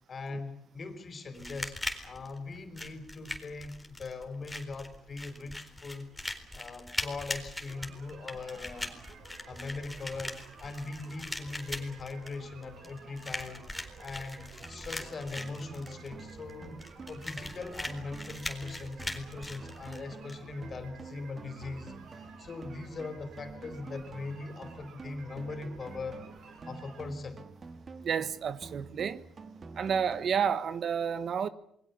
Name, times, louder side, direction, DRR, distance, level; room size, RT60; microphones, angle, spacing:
voice 1, 0.0-1.8 2.0-6.1 6.5-9.0 9.5-13.7 14.0-26.2 26.7-27.4, left 3 dB, 40° left, 4.7 m, -41 dB
sound 1, 1.3-20.3, left 1 dB, 5° left, 4.0 m, -41 dB
sound 2, 7.7-27.1, right 5 dB, 70° right, 6.3 m, -53 dB
sound 3, 14.6-30.6, right 4 dB, 35° right, 2.0 m, -49 dB
voice 2, 28.0-29.2 29.7-31.5, right 7 dB, 55° right, 1.3 m, -30 dB
28.0 x 21.5 x 7.2 m
cardioid pair, 115°, 0 cm